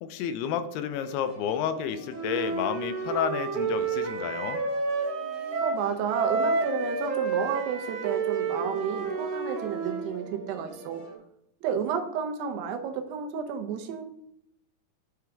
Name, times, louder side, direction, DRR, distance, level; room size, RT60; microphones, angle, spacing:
voice 1, 0.1-4.6, left 8 dB, 85° left, 11 dB, 2.6 m, -30 dB
sound 1, 0.9-11.2, right 1 dB, 45° left, 1.6 m, -46 dB
Wind instrument woodwind instrument, 2.1-5.8 6.1-10.1, right 4 dB, 70° right, 2.6 m, -30 dB
voice 2, 5.6-11.0 11.6-14.2, right 7 dB, 90° right, 5 dB, 2.9 m, -31 dB
9.2 x 4.8 x 3.5 m, 0.76 s
omnidirectional pair, 4.6 m